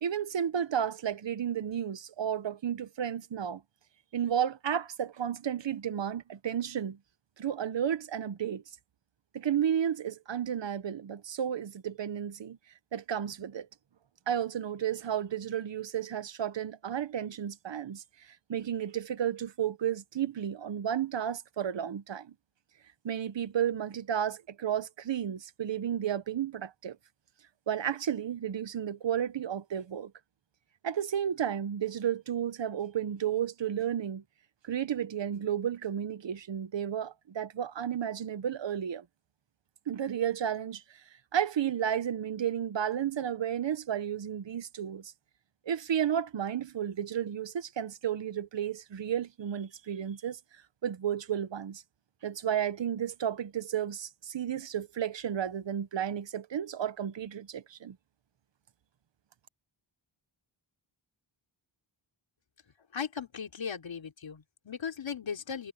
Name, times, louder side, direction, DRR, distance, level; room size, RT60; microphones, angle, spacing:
voice 1, 0.0-3.6 4.1-7.0 7.4-8.6 9.3-12.6 12.9-13.7 14.3-22.3 23.0-27.0 27.7-30.1 30.8-34.2 34.6-39.0 39.9-41.0 41.3-45.1 45.7-50.4 50.8-51.8 52.2-58.0, right 9 dB, 65° right, 1.0 m, -32 dB
voice 2, 62.9-65.7, left 6 dB, 65° left, 3.4 m, -37 dB
wide cardioid pair, 140°, 48 cm